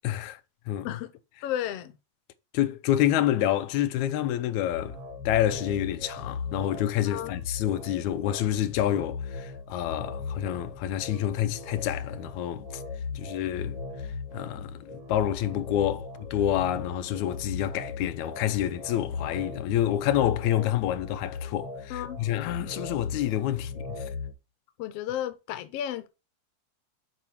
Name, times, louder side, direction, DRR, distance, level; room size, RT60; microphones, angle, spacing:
voice 1, 0.0-0.4 0.7-0.9 2.5-5.0 5.3-12.8 13.1-13.8 14.3-24.1, left 12 dB, 90° left, 2.0 m, -28 dB
voice 2, 1.4-1.9 7.1-7.3 21.9-22.2 24.8-26.1, left 11 dB, 70° left, 1.7 m, -33 dB
sound 1, 4.7-24.3, left 4 dB, 20° right, 1.3 m, -38 dB
7.1 x 5.8 x 4.5 m
omnidirectional pair, 3.3 m